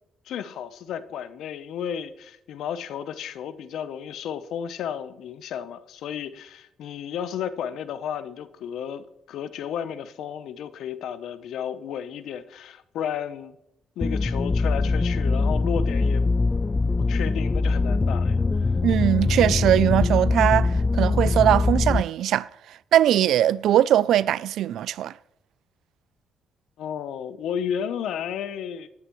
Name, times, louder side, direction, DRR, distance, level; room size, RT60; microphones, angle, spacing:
voice 1, 0.3-13.6 14.0-16.3 17.1-18.7 26.8-28.9, left 8 dB, 80° left, 0.8 m, -33 dB
sound 1, 14.0-22.0, left 3 dB, 25° left, 0.3 m, -22 dB
voice 2, 18.8-22.5 22.9-25.1, right 11 dB, 75° right, 0.3 m, -21 dB
18.5 x 9.7 x 3.1 m
cardioid pair, 90°, 0 cm